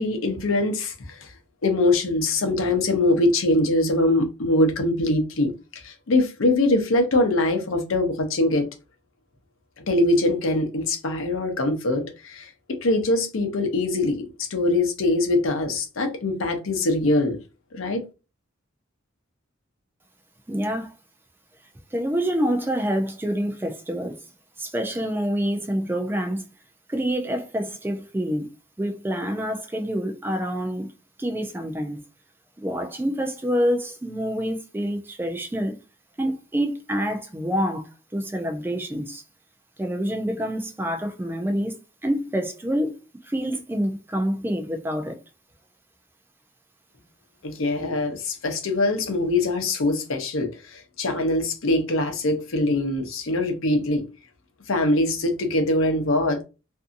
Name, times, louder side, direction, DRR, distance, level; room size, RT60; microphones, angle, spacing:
voice 1, 0.0-1.3 1.6-8.7 9.9-17.4 17.7-18.0 47.4-54.0 54.7-56.4, left 2 dB, 80° left, 0.7 m, -23 dB
voice 2, 20.5-20.9 21.9-24.2 24.6-26.4 26.9-28.5 28.8-30.9 31.2-32.0 32.6-35.8 36.2-39.2 39.8-43.0 43.2-45.2, equal, 10° right, 0.3 m, -27 dB
2.6 x 2.5 x 2.5 m
head